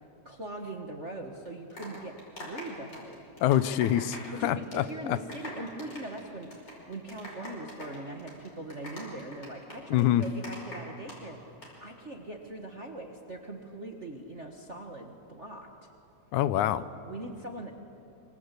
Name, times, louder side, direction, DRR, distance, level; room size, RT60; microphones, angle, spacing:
voice 1, 0.2-3.3 4.3-6.5 6.9-11.4 11.8-15.7 16.8-17.7, right 2 dB, 35° right, 3 dB, 1.2 m, -41 dB
sound 1, 1.4-4.4 4.6-4.9 5.2-11.2 11.4-11.7, left 1 dB, 35° left, 6.1 m, -43 dB
voice 2, 3.4-4.2 4.4-4.8 9.9-10.2 16.3-16.8, left 12 dB, 85° left, 14 dB, 2.2 m, -25 dB
25.5 x 25.5 x 8.3 m, 2.8 s
omnidirectional pair, 3.3 m